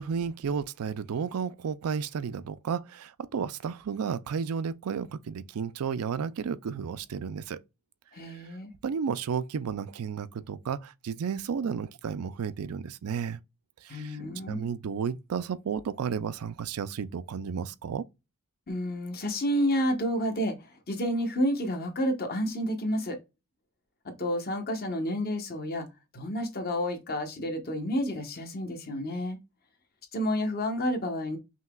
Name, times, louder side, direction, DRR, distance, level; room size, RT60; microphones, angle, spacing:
voice 1, 0.0-7.6 8.8-13.4 13.8-14.2 14.5-18.0, right 6 dB, 85° right, 0.4 m, -32 dB
voice 2, 8.1-8.7 13.9-14.7 18.7-23.2 24.2-25.9 26.1-29.4 30.1-31.4, equal, 45° left, 1.0 m, -30 dB
5.6 x 2.9 x 2.3 m
head